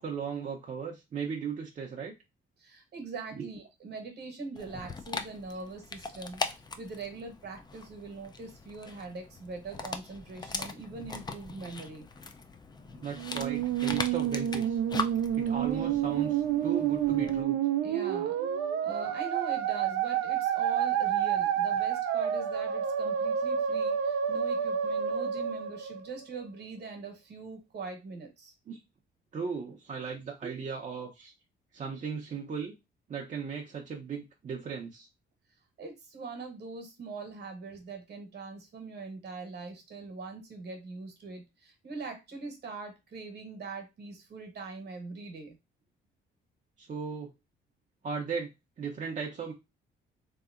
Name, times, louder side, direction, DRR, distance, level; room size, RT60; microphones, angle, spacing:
voice 1, 0.0-2.1 3.4-3.5 13.0-14.8 15.3-17.6 28.7-28.8 29.3-31.3 31.7-32.7 33.1-35.1 46.8-47.3 48.0-48.5 48.8-49.5, right 6 dB, 40° right, -1 dB, 0.6 m, -36 dB
voice 2, 2.6-6.4 6.8-12.0 17.8-18.4 18.8-28.5 35.8-45.6, right 4 dB, 55° right, 5 dB, 1.1 m, -42 dB
Dog, 4.6-17.4, left 4 dB, 20° left, 0.4 m, -40 dB
Musical instrument, 13.1-26.4, right 9 dB, 80° right, 0.5 m, -29 dB
3.2 x 2.8 x 2.4 m, 0.23 s
cardioid pair, 90°, 20 cm